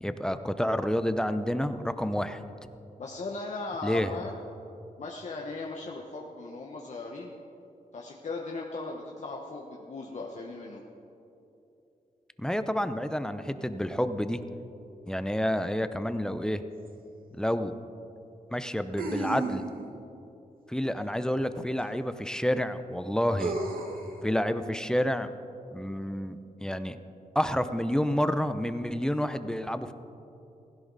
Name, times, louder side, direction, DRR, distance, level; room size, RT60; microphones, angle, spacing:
voice 1, 0.0-2.4 3.8-4.1 12.4-14.4 15.1-16.6 17.4-17.7 18.5-19.6 20.7-23.6 24.2-25.3 25.7-27.0 27.3-29.9, equal, 5° left, 10 dB, 0.7 m, -29 dB
voice 2, 3.0-4.4 5.0-7.3 7.9-10.8, left 3 dB, 55° left, -1 dB, 1.3 m, -38 dB
sound 1, 16.9-17.0 19.0-19.9 21.8-21.9 23.4-24.1, right 2 dB, 80° right, 1.7 m, -33 dB
16.0 x 16.0 x 4.1 m, 2.8 s
cardioid pair, 80°, 15 cm